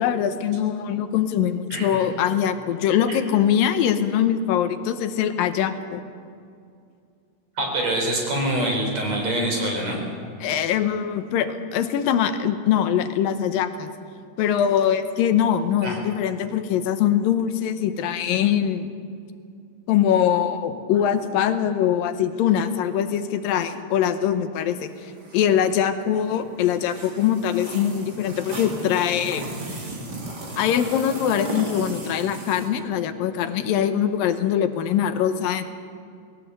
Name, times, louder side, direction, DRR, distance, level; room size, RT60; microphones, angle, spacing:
voice 1, 0.0-6.0 10.4-13.9 14.4-18.9 19.9-29.4 30.6-35.6, left 9 dB, 85° left, 9 dB, 2.7 m, -22 dB
voice 2, 1.7-2.0 3.1-3.2 7.6-10.0 15.8-16.0, right 1 dB, 50° right, 1 dB, 5.2 m, -25 dB
sound 1, 24.7-32.7, right 2 dB, 30° right, 2.6 m, -36 dB
20.5 x 17.5 x 8.1 m, 2.3 s
omnidirectional pair, 4.0 m